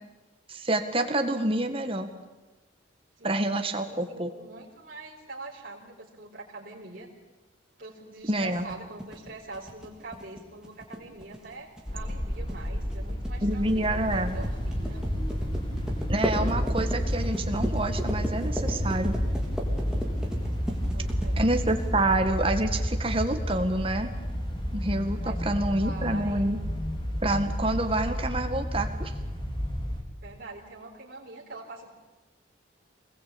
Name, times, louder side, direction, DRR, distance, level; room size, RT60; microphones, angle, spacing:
voice 1, 0.5-2.1 3.2-4.3 8.3-8.6 13.4-14.3 16.1-19.2 21.4-24.1 24.7-26.6 27.2-29.1, right 1 dB, 30° right, 6 dB, 1.9 m, -27 dB
voice 2, 3.7-7.1 7.8-15.1 20.9-21.4 25.2-26.4 30.2-31.9, right 2 dB, 50° right, -4 dB, 4.5 m, -44 dB
sound 1, 8.4-22.1, equal, 5° right, 3.6 m, -36 dB
sound 2, 11.9-30.0, equal, 25° left, 3.7 m, -30 dB
25.0 x 20.5 x 8.8 m, 1.2 s
head